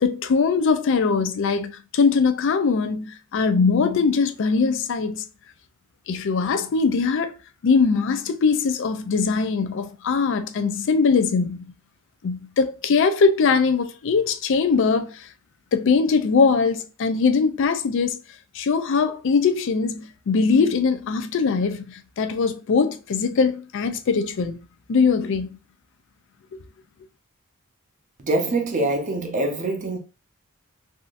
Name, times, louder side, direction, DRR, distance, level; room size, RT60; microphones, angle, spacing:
voice 1, 0.0-5.2 6.1-7.3 7.6-11.7 12.2-15.3 15.7-18.2 18.5-24.6 24.9-25.6, left 5 dB, 60° left, 0.4 m, -21 dB
voice 2, 28.2-30.0, right 2 dB, 35° right, 0.6 m, -24 dB
3.5 x 2.6 x 2.5 m
head